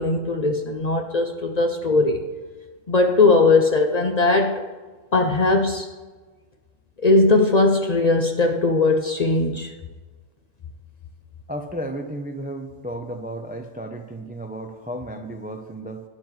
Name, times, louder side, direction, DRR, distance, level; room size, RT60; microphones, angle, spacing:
voice 1, 0.0-2.2 2.9-4.6 5.1-5.9 7.0-9.7, left 3 dB, 45° left, 4 dB, 0.6 m, -19 dB
voice 2, 11.5-16.0, right 1 dB, 15° right, 6 dB, 0.3 m, -33 dB
12.0 x 9.7 x 3.2 m, 1.4 s
omnidirectional pair, 1.3 m